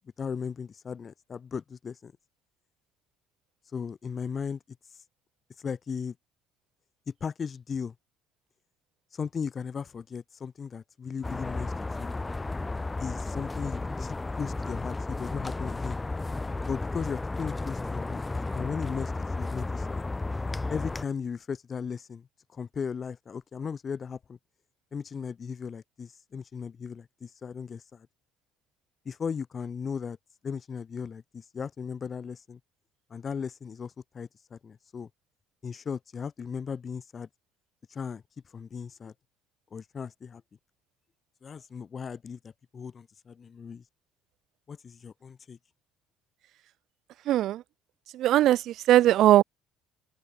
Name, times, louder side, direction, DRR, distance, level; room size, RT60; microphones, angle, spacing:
voice 1, 0.2-2.1 3.7-4.6 5.6-6.1 7.2-7.9 9.1-11.7 12.0-12.1 13.0-16.0 16.7-18.3 18.5-19.1 19.4-20.0 20.7-22.2 22.5-24.4 24.9-28.1 29.0-30.2 30.4-32.6 33.1-35.1 35.6-37.3 37.9-38.2 38.5-39.1 39.7-40.4 41.4-43.8 44.7-45.6, left 6 dB, 30° left, 6.2 m, -36 dB
sound 1, 11.2-21.0, left 3 dB, 10° left, 0.8 m, -33 dB
voice 2, 47.3-47.6 48.1-49.4, right 13 dB, 55° right, 0.3 m, -20 dB
open air
cardioid pair, 140°, 0 cm